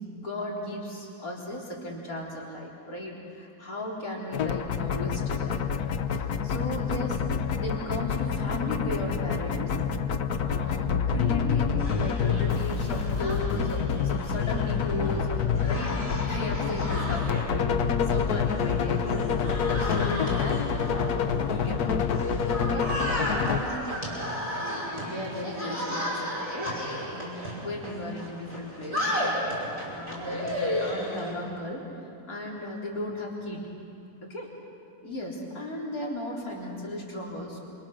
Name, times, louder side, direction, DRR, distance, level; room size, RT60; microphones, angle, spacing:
voice 1, 0.0-5.6 6.1-7.2 7.6-9.7 10.1-10.2 10.4-15.4 15.6-16.0 16.2-22.1 22.6-22.9 23.2-23.9 24.9-29.5 29.8-31.8 32.3-33.6 34.3-34.5 35.0-37.7, left 1 dB, 70° left, -3 dB, 4.5 m, -36 dB
sound 1, 4.3-23.6, left 7 dB, 85° left, 1.5 m, -27 dB
sound 2, 11.8-31.3, equal, 20° right, 5.9 m, -34 dB
27.0 x 27.0 x 6.5 m, 2.5 s
omnidirectional pair, 1.6 m